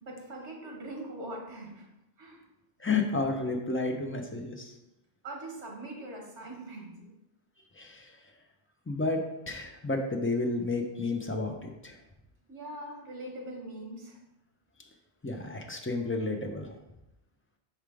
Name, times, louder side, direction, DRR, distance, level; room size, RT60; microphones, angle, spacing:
voice 1, 0.0-1.9 2.2-2.4 5.2-7.1 12.4-14.2, right 1 dB, 85° right, -1 dB, 1.5 m, -42 dB
voice 2, 2.8-4.7 7.8-8.1 8.9-12.0 15.2-16.7, left 3 dB, 15° left, 2 dB, 0.4 m, -31 dB
5.7 x 3.6 x 4.8 m, 0.92 s
omnidirectional pair, 1.2 m